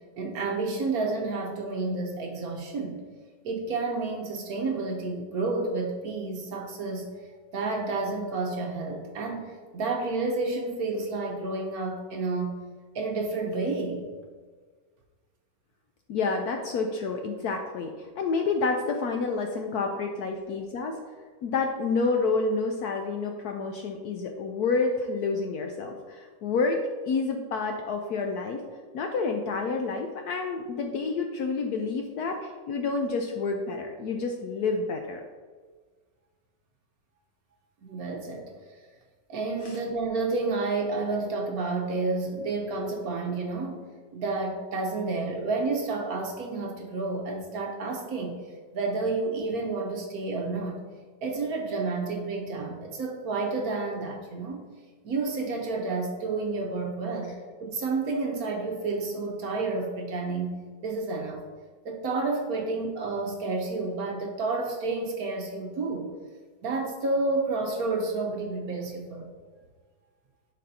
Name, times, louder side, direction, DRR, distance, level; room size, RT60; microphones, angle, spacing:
voice 1, 0.2-3.0 3.4-7.1 7.5-12.6 12.9-14.1 37.8-38.5 39.3-43.8 44.1-48.4 48.7-50.8 51.2-54.6 55.0-57.3 57.6-61.4 61.8-66.1 66.6-69.3, right 3 dB, 60° right, 1 dB, 1.1 m, -30 dB
voice 2, 16.1-21.0 21.4-28.6 28.9-35.2 39.6-39.8, left 4 dB, 75° left, 3 dB, 0.9 m, -29 dB
10.5 x 4.2 x 2.7 m, 1.5 s
omnidirectional pair, 2.1 m